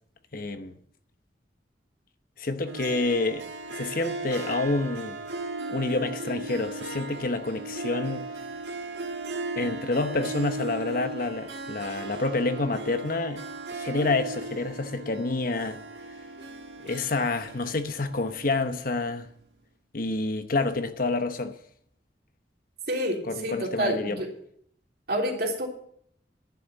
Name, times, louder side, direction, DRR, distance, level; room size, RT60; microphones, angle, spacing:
voice 1, 0.3-0.8 2.4-5.2 5.7-8.2 9.6-13.4 13.7-15.8 16.8-19.3 19.9-21.6 23.3-24.2, left 3 dB, 55° left, 1.0 m, -28 dB
Harp, 2.7-19.2, right 2 dB, 85° right, 1.7 m, -37 dB
voice 2, 22.9-24.3 25.1-25.7, equal, 60° right, 3.4 m, -28 dB
11.5 x 6.8 x 9.3 m
head